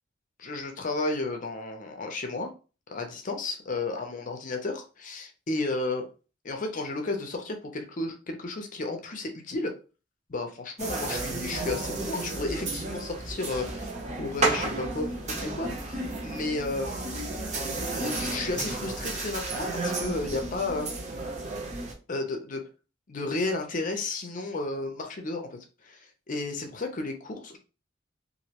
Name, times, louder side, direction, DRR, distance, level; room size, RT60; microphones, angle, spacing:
voice 1, 0.4-2.5 2.9-6.1 6.4-9.7 10.3-13.9 14.2-17.4 17.9-21.0 22.1-22.6 23.1-25.6 25.8-27.6, left 2 dB, 40° left, 4 dB, 0.6 m, -33 dB
sound 1, 10.8-21.9, right 2 dB, 35° right, 0.7 m, -32 dB
3.0 x 2.6 x 2.9 m, 0.34 s
head